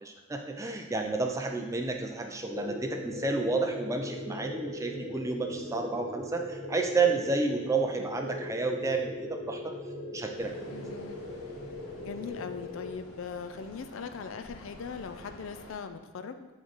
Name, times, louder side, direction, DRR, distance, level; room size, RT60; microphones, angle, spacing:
voice 1, 0.0-9.7 10.1-10.5, right 3 dB, 15° right, 3 dB, 0.4 m, -31 dB
sound 1, 2.5-12.9, left 2 dB, 35° left, 0.9 m, -40 dB
sound 2, 10.3-15.7, left 1 dB, 85° left, 1.4 m, -49 dB
voice 2, 10.7-11.2 12.0-16.5, left 6 dB, 65° left, 9 dB, 0.4 m, -40 dB
8.4 x 3.1 x 3.9 m, 1.2 s
head